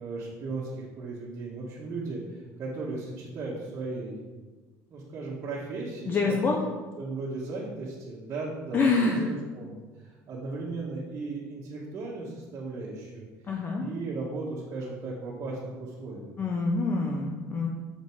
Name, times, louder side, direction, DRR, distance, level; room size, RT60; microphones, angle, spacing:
voice 1, 0.0-4.2 4.9-6.4 7.0-16.3, right 3 dB, 45° right, -8 dB, 1.8 m, -36 dB
voice 2, 6.1-6.6 8.7-9.2 13.5-13.8 16.4-17.7, left 3 dB, 30° left, 0 dB, 0.9 m, -26 dB
6.7 x 5.3 x 6.3 m, 1.3 s
cardioid pair, 140°, 7 cm